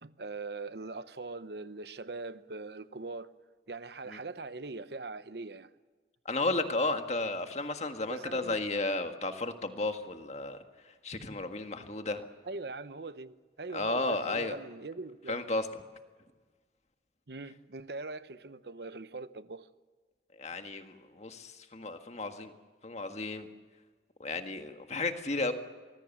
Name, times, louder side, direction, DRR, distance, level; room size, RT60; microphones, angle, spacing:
voice 1, 0.0-3.3 3.7-5.7 8.1-8.6 12.4-15.4 17.3-19.7, right 3 dB, 65° right, 0.9 m, -41 dB
voice 2, 6.2-10.6 10.8-12.3 13.7-14.6 15.3-15.7 20.4-22.5 22.8-23.5 24.2-25.5, left 2 dB, 40° left, 1.7 m, -33 dB
25.0 x 20.0 x 7.3 m
head